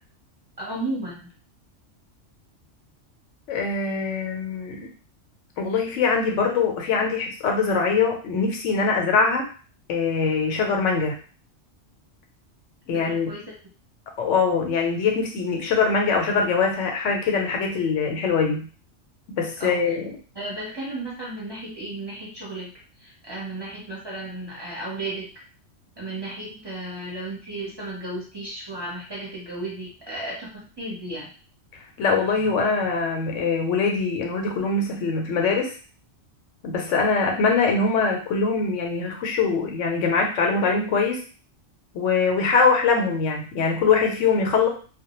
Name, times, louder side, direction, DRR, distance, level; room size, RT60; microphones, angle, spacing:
voice 1, 0.6-1.3 12.9-13.4 19.6-19.8 20.3-22.7 23.0-25.3 26.0-31.3, right 2 dB, 25° right, -6 dB, 0.7 m, -34 dB
voice 2, 3.5-4.9 5.6-9.5 9.9-11.2 12.9-13.3 14.2-18.7 19.4-20.1 32.0-35.7 36.6-41.2 41.9-44.7, left 4 dB, 90° left, 2 dB, 0.9 m, -23 dB
2.2 x 2.0 x 2.9 m, 0.38 s
omnidirectional pair, 1.2 m